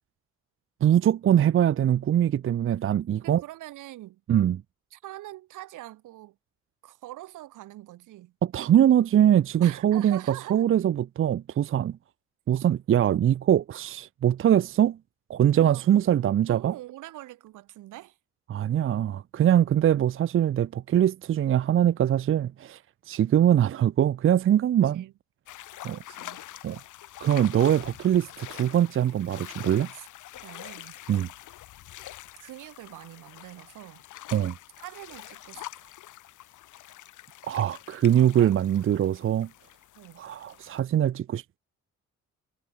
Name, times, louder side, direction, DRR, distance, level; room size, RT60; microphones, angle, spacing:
voice 1, 0.8-3.4 4.3-4.6 8.4-12.0 12.5-15.0 15.3-16.7 18.5-22.8 23.1-25.0 25.8-26.0 26.6-26.8 27.2-29.9 31.1-31.3 34.3-34.5 37.5-39.5 40.2-41.6, right 10 dB, 45° right, 0.6 m, -22 dB
voice 2, 3.2-4.2 4.9-6.4 6.8-8.3 9.6-10.7 15.5-18.2 24.9-25.1 25.9-26.4 29.9-30.1 30.4-30.9 32.4-34.1 34.8-35.9 38.2-38.5 39.9-40.2, right 16 dB, 90° right, 4.7 m, -44 dB
sound 1, 25.5-40.8, left 14 dB, 80° left, 2.4 m, -45 dB
cardioid pair, 90°, 30 cm